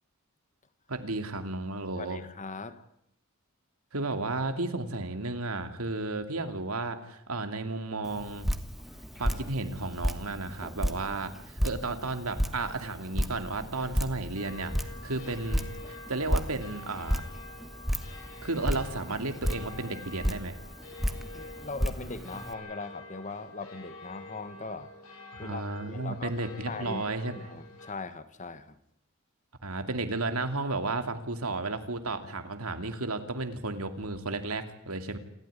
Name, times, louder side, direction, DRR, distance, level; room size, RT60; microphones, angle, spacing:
voice 1, 0.9-2.2 3.9-8.5 9.2-11.3 11.6-17.2 18.4-20.6 25.4-27.3 29.6-35.2, right 2 dB, 85° right, 7 dB, 2.6 m, -33 dB
voice 2, 1.9-2.8 8.9-9.1 21.3-24.9 25.4-27.0 27.3-28.8, left 3 dB, 35° left, 12 dB, 1.6 m, -40 dB
Drip, 8.0-22.5, equal, ahead, 1.4 m, -33 dB
sound 1, 14.4-27.9, left 2 dB, 70° left, 6.9 m, -47 dB
28.0 x 14.0 x 9.9 m, 0.78 s
head